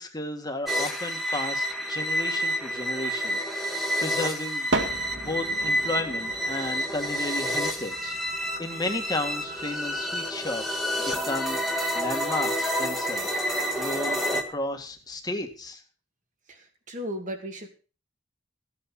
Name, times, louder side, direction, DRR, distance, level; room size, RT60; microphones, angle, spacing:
voice 1, 0.0-4.7 5.2-15.8, left 2 dB, 20° left, 5 dB, 2.0 m, -34 dB
sound 1, 0.7-14.4, equal, ahead, 1.8 m, -29 dB
sound 2, 1.3-1.4 2.2-3.1 4.2-4.3 4.4-15.7, right 2 dB, 90° right, 2.2 m, -39 dB
voice 2, 16.5-17.7, equal, 45° right, 4 dB, 2.5 m, -36 dB
15.5 x 8.6 x 5.6 m, 0.36 s
head